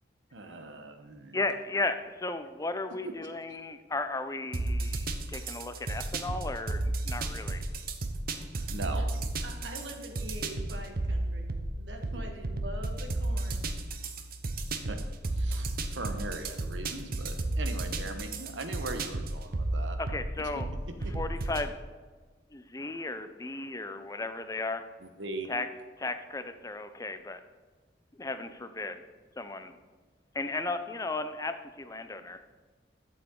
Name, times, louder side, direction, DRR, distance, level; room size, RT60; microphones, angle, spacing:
voice 1, 0.3-1.4 3.0-3.3 8.4-9.0 12.1-12.2 14.9-15.0 15.3-20.0 20.4-20.5 21.0-21.1 25.0-25.5, right 2 dB, 90° right, 6 dB, 1.1 m, -40 dB
voice 2, 1.3-7.6 20.0-20.7 21.1-21.7 22.5-24.8 25.5-25.7 26.0-27.4 28.2-29.0 29.4-29.7 30.3-32.4, left 3 dB, 20° left, 9 dB, 0.6 m, -35 dB
sound 1, 4.5-21.7, right 2 dB, 55° right, 0.8 m, -33 dB
voice 3, 9.4-13.6, right 1 dB, 75° right, 3 dB, 1.6 m, -44 dB
11.5 x 7.1 x 3.9 m, 1.4 s
head